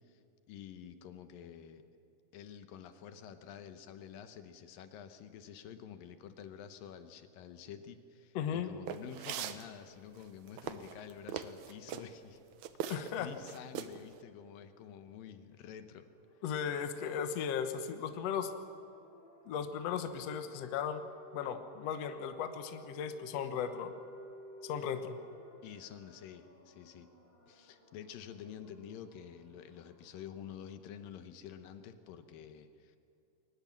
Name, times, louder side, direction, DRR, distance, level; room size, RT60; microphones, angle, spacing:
voice 1, 0.5-1.8 2.3-12.4 12.9-16.1 25.6-27.1 27.5-33.0, left 8 dB, 80° left, 9 dB, 2.7 m, -49 dB
voice 2, 8.4-8.7 12.9-13.3 16.4-18.5 19.5-21.1 21.3-23.9 24.6-25.2, left 7 dB, 60° left, 8 dB, 1.9 m, -36 dB
sound 1, 8.9-9.6 10.2-12.1 12.6-13.2 13.4-14.0, right 10 dB, 70° right, 2.0 m, -40 dB
sound 2, 16.1-30.8, equal, 15° left, 2.7 m, -57 dB
22.0 x 19.5 x 7.5 m, 2.7 s
omnidirectional pair, 4.0 m